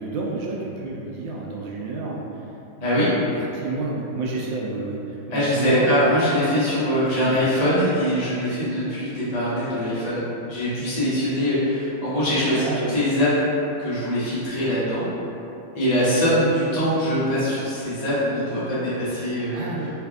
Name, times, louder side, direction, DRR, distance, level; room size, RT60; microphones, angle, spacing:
voice 1, 0.0-2.2 2.9-3.0 3.5-5.0 5.3-5.9 7.2-7.4 12.6-13.0 19.5-19.9, right 3 dB, 80° right, -3 dB, 1.3 m, -29 dB
voice 2, 5.3-10.2 10.5-13.5 13.8-15.1 15.7-19.6, equal, 35° left, -11 dB, 0.7 m, -22 dB
3.5 x 3.3 x 2.3 m, 2.9 s
omnidirectional pair, 2.2 m